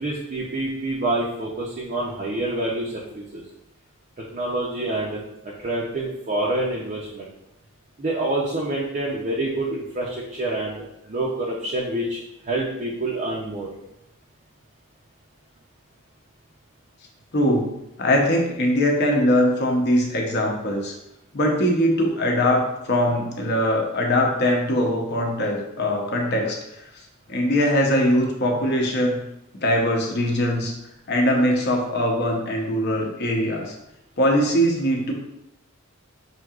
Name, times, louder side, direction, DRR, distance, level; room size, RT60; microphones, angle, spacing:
voice 1, 0.0-3.4 4.3-7.3 8.0-12.2 12.5-13.7, right 2 dB, 40° right, -4 dB, 0.5 m, -27 dB
voice 2, 17.3-17.7 18.0-20.9 21.3-26.6 27.3-29.2 29.6-30.7 31.1-33.7 34.2-35.1, equal, 50° left, 0 dB, 0.8 m, -21 dB
6.0 x 2.7 x 2.4 m, 0.85 s
head